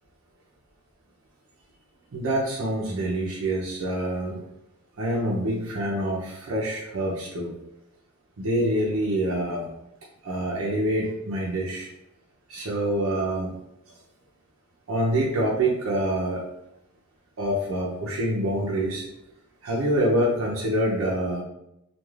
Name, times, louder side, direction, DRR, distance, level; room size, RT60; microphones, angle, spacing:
voice 1, 2.1-4.4 5.0-7.6 8.4-9.7 10.2-11.9 12.5-13.5 14.9-16.4 17.4-19.1 19.6-21.4, right 1 dB, 75° right, -4 dB, 0.5 m, -26 dB
2.3 x 2.3 x 3.1 m, 0.85 s
head